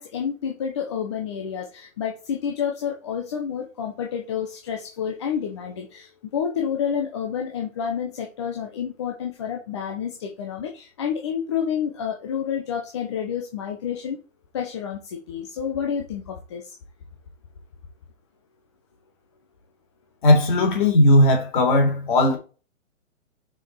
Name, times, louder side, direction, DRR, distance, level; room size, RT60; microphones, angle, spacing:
voice 1, 0.0-14.2 14.5-16.7, left 7 dB, 20° left, 0.8 m, -29 dB
voice 2, 20.2-22.4, left 1 dB, 40° left, 3.1 m, -17 dB
6.2 x 5.0 x 4.6 m
hypercardioid pair, 165°, 40 cm